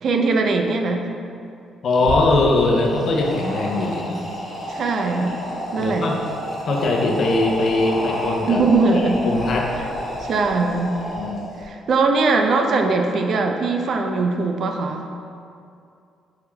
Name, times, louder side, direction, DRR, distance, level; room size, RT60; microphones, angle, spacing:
voice 1, 0.0-1.0 4.7-5.5 5.7-6.1 8.5-9.2 10.2-11.0 11.6-15.1, right 3 dB, 60° right, 4 dB, 0.3 m, -20 dB
voice 2, 1.8-4.2 5.8-6.2 6.6-8.6 9.2-9.7 11.2-11.4, left 2 dB, 60° left, 0 dB, 0.5 m, -20 dB
sound 1, 2.0-11.6, equal, 20° left, 1.2 m, -30 dB
4.7 x 2.9 x 2.2 m, 2.5 s
cardioid pair, 90°, 0 cm